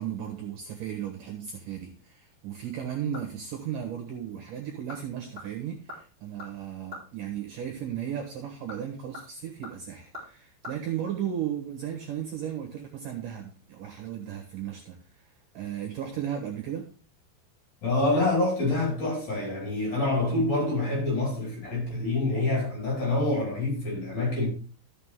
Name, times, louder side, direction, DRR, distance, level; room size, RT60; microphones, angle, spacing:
voice 1, 0.0-16.9, right 9 dB, 65° right, 2.5 m, -35 dB
sound 1, 2.6-3.5 3.9-4.0 4.6-5.0 5.3-7.1 8.4-10.8 11.0-11.1, left 2 dB, 15° right, 4.9 m, -45 dB
voice 2, 17.8-24.5, left 2 dB, 40° left, 6.1 m, -26 dB
13.5 x 6.6 x 3.6 m
omnidirectional pair, 5.0 m